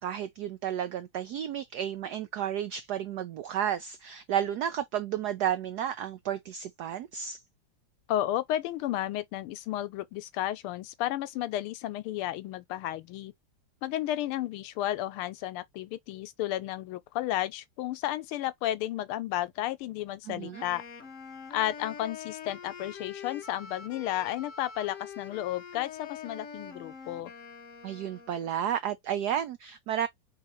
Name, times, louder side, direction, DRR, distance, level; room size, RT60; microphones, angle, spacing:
voice 1, 0.0-7.4 20.3-20.6 27.8-30.1, right 10 dB, 85° right, 0.8 m, -32 dB
voice 2, 8.1-13.3 13.8-20.8 21.5-27.3, left 13 dB, 85° left, 1.5 m, -32 dB
Wind instrument woodwind instrument, 20.5-28.6, left 6 dB, 45° left, 1.1 m, -45 dB
4.7 x 3.6 x 3.0 m
omnidirectional pair, 2.3 m